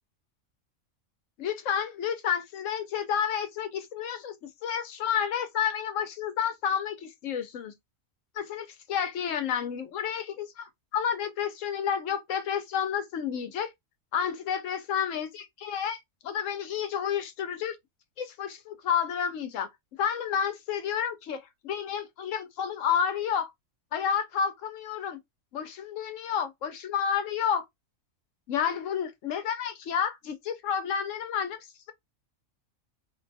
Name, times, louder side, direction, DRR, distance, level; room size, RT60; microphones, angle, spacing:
voice 1, 1.4-7.7 8.4-13.7 14.1-17.8 18.2-19.7 20.0-23.5 23.9-25.2 25.5-27.6 28.5-31.9, left 8 dB, 75° left, 1.0 m, -30 dB
2.6 x 2.2 x 2.6 m
omnidirectional pair, 1.4 m